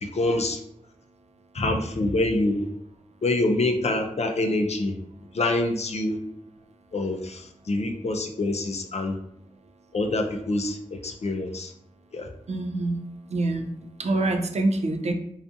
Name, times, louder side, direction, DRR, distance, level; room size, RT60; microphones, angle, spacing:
voice 1, 0.0-0.6 1.5-2.6 3.2-4.9 5.3-6.2 6.9-9.2 9.9-10.8 11.0-11.7 12.1-12.3, left 2 dB, 55° left, 4 dB, 0.4 m, -26 dB
voice 2, 12.5-15.1, right 2 dB, 55° right, 4 dB, 0.4 m, -26 dB
2.4 x 2.3 x 2.6 m, 0.73 s
wide cardioid pair, 60°, 13 cm